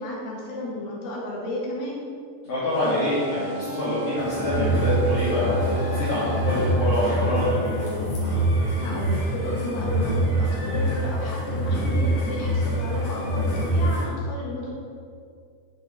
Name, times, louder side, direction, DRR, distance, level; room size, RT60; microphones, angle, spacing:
voice 1, 0.0-2.0 8.8-14.7, left 1 dB, 85° left, -4 dB, 3.3 m, -33 dB
voice 2, 2.5-8.0, left 1 dB, 50° left, -13 dB, 2.4 m, -25 dB
sound 1, 2.7-6.9, right 2 dB, 80° right, 2.4 m, -36 dB
sound 2, 4.2-14.1, right 1 dB, 65° left, 2.9 m, -25 dB
7.3 x 6.7 x 3.5 m, 2.2 s
omnidirectional pair, 4.2 m